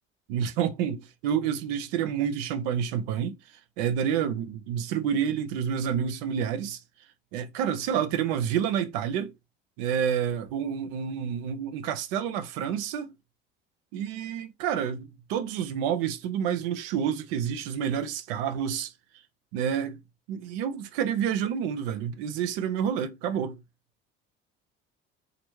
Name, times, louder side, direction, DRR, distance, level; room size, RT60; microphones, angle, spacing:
voice 1, 0.3-3.3 3.8-6.8 7.3-9.3 9.8-13.1 13.9-18.9 19.5-20.0 20.3-23.6, right 8 dB, 70° right, 0.6 m, -29 dB
3.0 x 2.5 x 3.0 m
hypercardioid pair, 60°, 30 cm